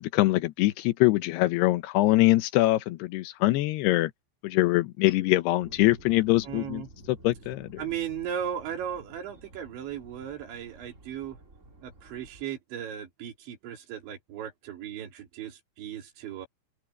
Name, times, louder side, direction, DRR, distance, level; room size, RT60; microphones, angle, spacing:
voice 1, 0.0-4.1 4.4-6.8 7.1-7.8, left 18 dB, 75° left, 2.6 m, -23 dB
sound 1, 5.6-12.4, right 2 dB, 25° right, 1.9 m, -52 dB
voice 2, 6.4-6.9 7.8-11.4 11.8-16.5, right 9 dB, 75° right, 5.6 m, -36 dB
open air
omnidirectional pair, 5.2 m